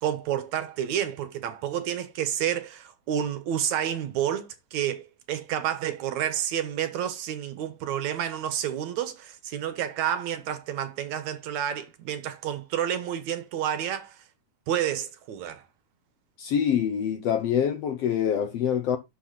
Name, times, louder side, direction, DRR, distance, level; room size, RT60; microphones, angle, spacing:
voice 1, 0.0-14.2 14.7-15.6, right 10 dB, 70° right, 2.3 m, -30 dB
voice 2, 16.4-19.0, left 8 dB, 65° left, 1.6 m, -25 dB
12.0 x 5.9 x 3.9 m
omnidirectional pair, 3.7 m